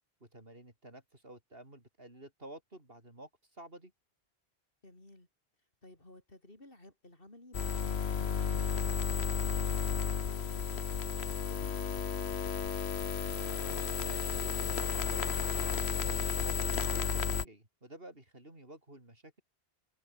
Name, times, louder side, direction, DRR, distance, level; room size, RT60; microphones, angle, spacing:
voice 1, 0.2-3.9 14.0-19.4, right 1 dB, 65° right, 6.6 m, -51 dB
voice 2, 4.8-5.3 5.8-8.8, left 1 dB, 60° left, 5.7 m, -56 dB
sound 1, 7.5-17.4, left 7 dB, 90° left, 1.4 m, -33 dB
omnidirectional pair, 1.1 m